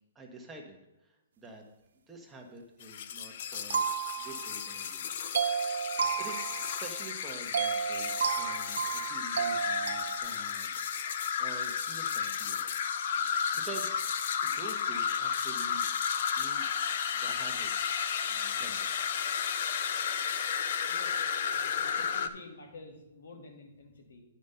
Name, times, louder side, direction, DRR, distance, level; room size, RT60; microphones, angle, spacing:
voice 1, 0.1-0.8 1.0-1.6 2.1-3.9 4.2-5.1 5.6-5.9 6.2-10.7 11.4-12.7 13.5-13.9 14.4-15.9 16.4-16.7 17.1-17.9 18.3-19.3, right 2 dB, 10° right, 0 dB, 1.0 m, -47 dB
sound 1, 2.8-22.3, left 7 dB, 50° left, 0.6 m, -33 dB
sound 2, 3.7-4.8 5.3-7.1 7.5-10.2, right 7 dB, 70° right, 1.0 m, -32 dB
voice 2, 20.9-24.2, left 3 dB, 75° left, 3 dB, 2.1 m, -51 dB
9.5 x 5.1 x 5.5 m, 0.96 s
hypercardioid pair, 155°, 0 cm